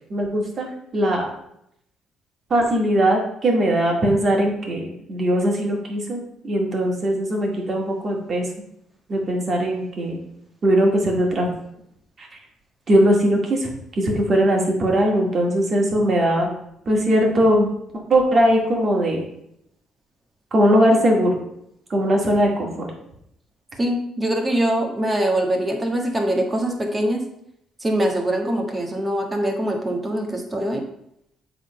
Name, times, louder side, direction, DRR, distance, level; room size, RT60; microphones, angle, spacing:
voice 1, 0.1-1.3 2.5-8.4 9.1-10.2 10.6-11.5 12.2-12.3 12.9-13.7 14.0-16.5 16.9-17.7 18.1-19.2 20.5-21.4 21.9-22.9, equal, 40° right, 0 dB, 2.1 m, -20 dB
voice 2, 23.8-27.2 27.8-30.8, right 1 dB, 20° right, 2 dB, 1.6 m, -23 dB
7.9 x 3.9 x 5.3 m, 0.76 s
cardioid pair, 100°, 0 cm